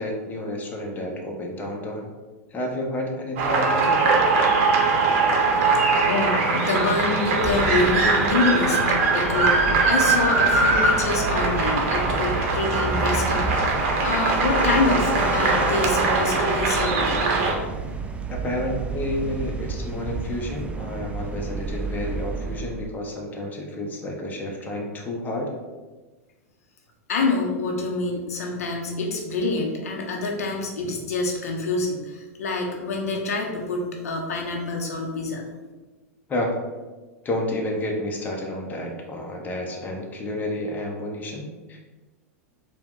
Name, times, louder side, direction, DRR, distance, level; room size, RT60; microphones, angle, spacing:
voice 1, 0.0-2.1 2.5-4.2 18.3-25.5 36.3-36.5 37.2-41.8, left 1 dB, 20° left, 0 dB, 0.8 m, -30 dB
sound 1, 3.4-17.5, right 3 dB, 55° right, 0.8 m, -21 dB
voice 2, 6.1-17.1 27.1-35.4, left 3 dB, 75° left, 0 dB, 0.7 m, -26 dB
sound 2, 7.4-22.9, right 4 dB, 15° right, 0.3 m, -32 dB
4.5 x 2.3 x 3.6 m, 1.3 s
hypercardioid pair, 100°, 8 cm